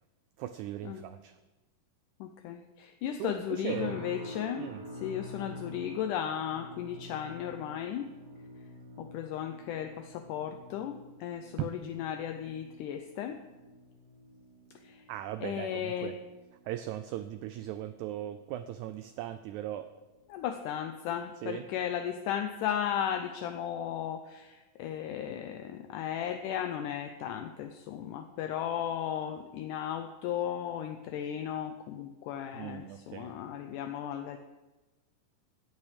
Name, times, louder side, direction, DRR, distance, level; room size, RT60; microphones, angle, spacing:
voice 1, 0.4-1.3 3.2-4.0 4.6-4.8 11.6-11.7 15.1-16.1 16.7-19.9 21.4-21.6 32.5-33.3, right 13 dB, 85° right, 11 dB, 1.7 m, -38 dB
voice 2, 2.2-4.7 5.0-8.1 9.0-13.4 14.8-15.0 15.4-16.2 20.3-34.4, left 9 dB, 80° left, 7 dB, 2.0 m, -35 dB
sound 1, 3.7-18.9 19.2-19.6 20.1-20.3, left 1 dB, 55° right, 2.7 m, -49 dB
15.5 x 8.6 x 5.0 m, 1.2 s
omnidirectional pair, 3.9 m